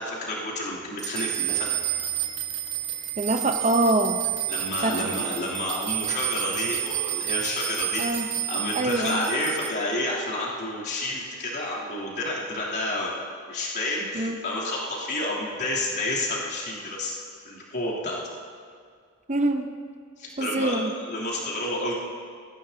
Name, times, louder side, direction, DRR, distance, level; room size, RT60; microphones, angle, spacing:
voice 1, 0.0-1.7 4.5-13.2 13.5-17.1 17.4-18.2 20.2-21.9, left 1 dB, 50° left, -7 dB, 3.2 m, -30 dB
sound 1, 1.0-9.7, right 12 dB, 55° right, 1.3 m, -30 dB
voice 2, 3.2-4.2 4.8-5.2 8.0-8.3 8.7-9.2 14.1-14.4 19.3-19.7 20.4-20.9, right 2 dB, 30° right, 6 dB, 0.8 m, -24 dB
21.5 x 14.5 x 2.8 m, 2.1 s
head